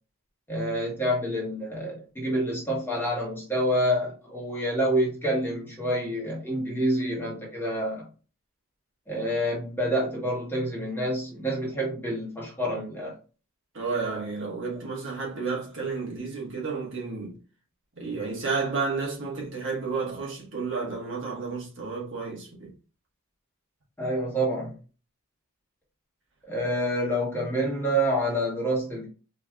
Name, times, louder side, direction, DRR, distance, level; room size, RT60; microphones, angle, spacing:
voice 1, 0.5-8.1 9.1-13.1 24.0-24.7 26.5-29.1, equal, 10° left, 1.2 m, -27 dB
voice 2, 13.7-17.4 18.0-22.7, right 4 dB, 55° right, 1.4 m, -31 dB
4.4 x 2.9 x 2.3 m
head